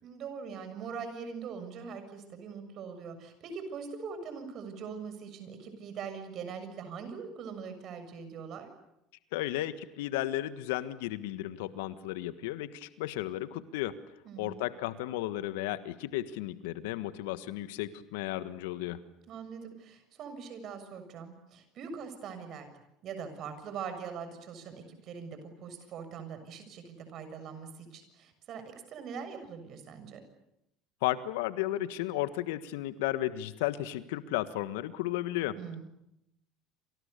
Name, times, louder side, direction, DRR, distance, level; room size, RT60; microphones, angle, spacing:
voice 1, 0.0-8.7 14.2-14.6 19.3-22.7 23.0-30.2 35.6-35.8, right 6 dB, 50° right, 9 dB, 6.9 m, -42 dB
voice 2, 9.3-14.0 14.4-19.1 31.0-35.8, left 14 dB, 75° left, 13 dB, 1.5 m, -34 dB
28.5 x 27.0 x 6.9 m, 0.84 s
hypercardioid pair, 75°, 0 cm